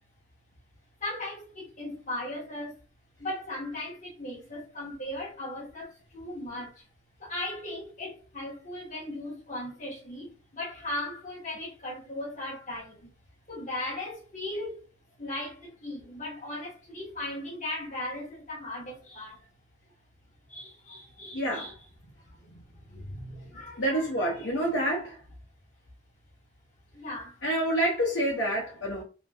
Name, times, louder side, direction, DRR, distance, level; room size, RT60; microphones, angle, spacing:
voice 1, 1.0-2.7 3.2-6.8 7.2-13.1 13.5-14.8 15.2-19.4 20.5-21.8 22.3-24.7 26.9-27.4, left 1 dB, 40° left, 1.0 m, -38 dB
voice 2, 21.3-21.7 23.8-25.2 27.4-29.0, right 1 dB, 80° left, 0.9 m, -27 dB
2.9 x 2.7 x 2.3 m
head